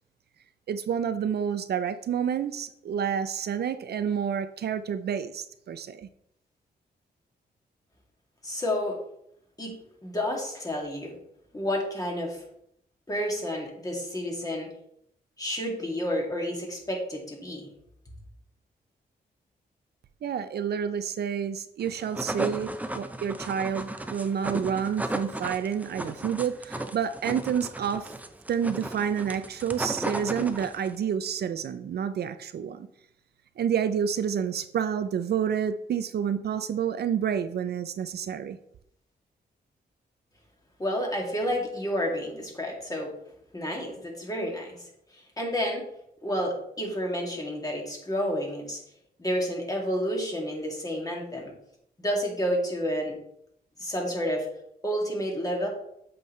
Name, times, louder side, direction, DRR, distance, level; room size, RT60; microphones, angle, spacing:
voice 1, 0.7-6.1 20.2-28.1 28.5-32.9 33.6-38.6, right 8 dB, 65° right, 11 dB, 0.5 m, -29 dB
voice 2, 8.4-9.0 9.6-11.1 11.5-12.4 13.1-14.7 15.4-17.7 40.8-43.1 43.5-45.8 46.2-48.8 49.2-51.5 52.0-53.2 53.8-54.5 54.8-55.7, equal, 20° left, -1 dB, 2.2 m, -30 dB
sound 1, 21.9-31.0, right 1 dB, 10° right, 0.5 m, -35 dB
7.8 x 5.4 x 3.2 m, 0.74 s
cardioid pair, 90°, 18 cm